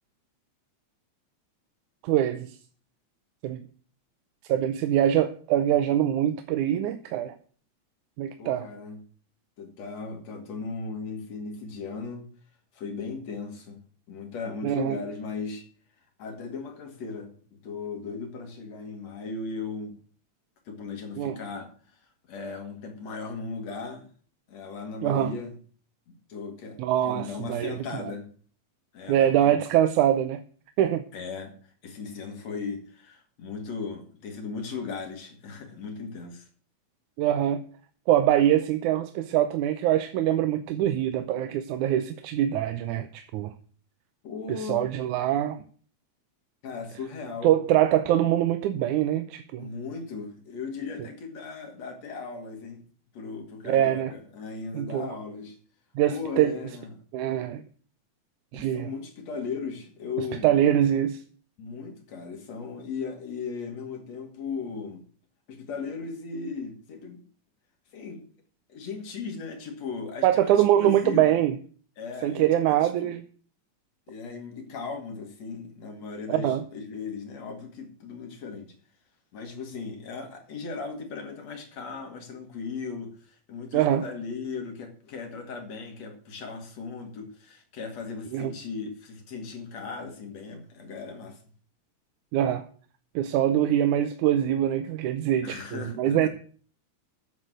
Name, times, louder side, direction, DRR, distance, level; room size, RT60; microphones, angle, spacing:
voice 1, 2.0-2.6 3.4-3.6 4.5-7.4 8.2-8.7 14.6-15.0 21.2-21.4 25.0-25.3 26.8-27.8 29.1-30.4 30.8-31.1 37.2-37.6 38.1-43.5 44.5-45.6 47.4-49.7 53.7-54.1 54.7-55.1 56.0-56.6 57.1-57.6 58.5-58.9 60.4-61.2 70.2-71.6 72.2-73.2 76.3-76.6 83.7-84.0 88.3-88.5 92.3-92.6 93.2-96.3, right 11 dB, 85° right, 2.2 m, -24 dB
voice 2, 8.4-9.0 9.6-12.3 12.7-15.6 16.2-17.3 17.6-19.9 20.7-21.7 22.3-24.1 24.5-25.6 26.1-28.3 28.9-29.6 31.1-36.5 44.2-44.9 46.6-47.5 49.6-52.8 53.1-55.6 56.1-56.9 58.5-60.5 61.6-65.0 65.5-67.2 67.9-68.2 68.7-71.3 72.0-73.1 74.1-78.7 79.3-91.4 95.4-96.3, left 4 dB, 65° left, 3.3 m, -37 dB
9.4 x 7.7 x 7.6 m
omnidirectional pair, 3.4 m